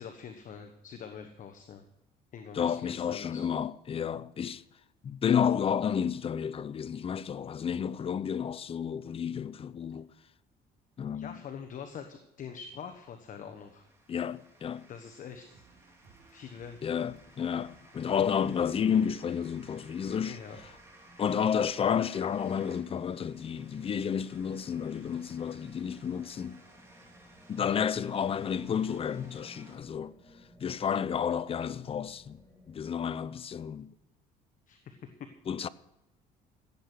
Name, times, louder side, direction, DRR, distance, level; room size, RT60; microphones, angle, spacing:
voice 1, 0.0-1.8 2.3-3.5 11.1-13.8 14.9-15.6 16.3-16.9 20.2-20.6 34.7-35.3, left 7 dB, 50° left, 1.2 m, -44 dB
voice 2, 2.5-4.6 5.0-10.1 11.0-11.4 14.1-14.9 16.8-20.4 21.2-26.6 27.5-30.1 30.6-32.4 32.7-33.9 35.5-35.7, left 8 dB, 35° left, 0.6 m, -31 dB
sound 1, 13.0-29.8, right 2 dB, 15° right, 3.3 m, -58 dB
sound 2, 15.2-20.7, right 5 dB, 60° right, 3.3 m, -60 dB
sound 3, 20.4-33.3, equal, 15° left, 2.8 m, -59 dB
16.0 x 8.4 x 6.1 m
cardioid pair, 110°, 17 cm